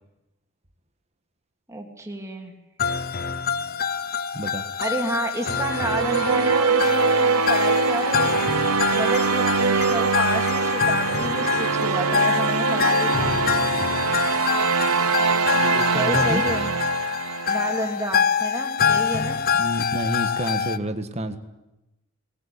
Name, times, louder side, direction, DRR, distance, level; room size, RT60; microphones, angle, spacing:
voice 1, 1.7-2.5 4.8-13.4 15.9-16.7 17.5-19.4, right 1 dB, 15° right, 2 dB, 2.7 m, -30 dB
sound 1, 2.8-20.8, left 7 dB, 40° left, 0.7 m, -25 dB
voice 2, 4.3-4.7 15.3-16.4 19.6-21.4, equal, 30° right, 7 dB, 1.5 m, -29 dB
sound 2, 5.5-17.9, right 5 dB, 85° right, 0.8 m, -23 dB
19.5 x 18.5 x 8.6 m, 0.95 s
head